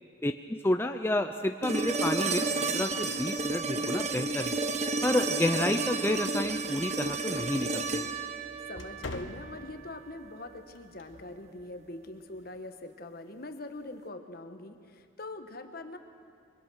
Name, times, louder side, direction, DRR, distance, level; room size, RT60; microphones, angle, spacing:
voice 1, 0.6-4.6 5.0-8.1, left 1 dB, 10° left, 6 dB, 0.5 m, -30 dB
sound 1, 1.6-9.7 11.8-11.9, right 3 dB, 35° right, 1.1 m, -31 dB
sound 2, 1.7-12.6, left 2 dB, 80° left, 1.0 m, -50 dB
voice 2, 8.7-16.0, left 2 dB, 50° left, 7 dB, 1.3 m, -43 dB
23.5 x 22.0 x 6.4 m, 2.5 s
head